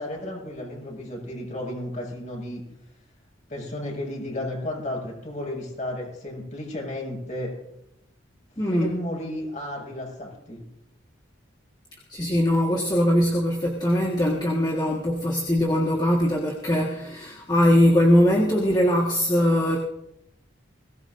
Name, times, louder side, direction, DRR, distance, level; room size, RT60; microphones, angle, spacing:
voice 1, 0.0-2.6 3.5-7.5 8.7-10.6, left 1 dB, 35° left, -2 dB, 6.6 m, -33 dB
voice 2, 8.6-8.9 12.1-19.8, equal, 20° left, -2 dB, 1.7 m, -21 dB
21.5 x 18.5 x 2.7 m, 0.86 s
head